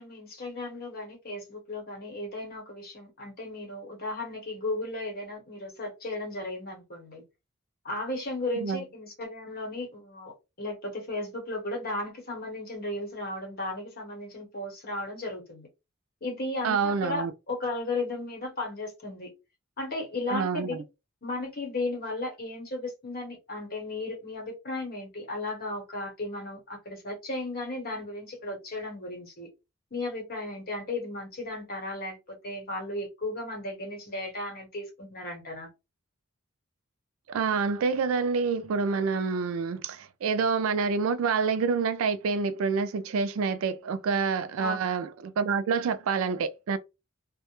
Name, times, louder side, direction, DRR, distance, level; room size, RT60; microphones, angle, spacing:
voice 1, 0.0-7.2 7.8-15.7 16.2-19.3 19.8-20.8 21.2-29.5 29.9-35.7 44.6-44.8, left 2 dB, 45° left, 1.0 m, -35 dB
voice 2, 16.6-17.3 20.3-20.8 37.3-46.8, right 5 dB, 75° right, 0.4 m, -27 dB
2.2 x 2.0 x 2.9 m
head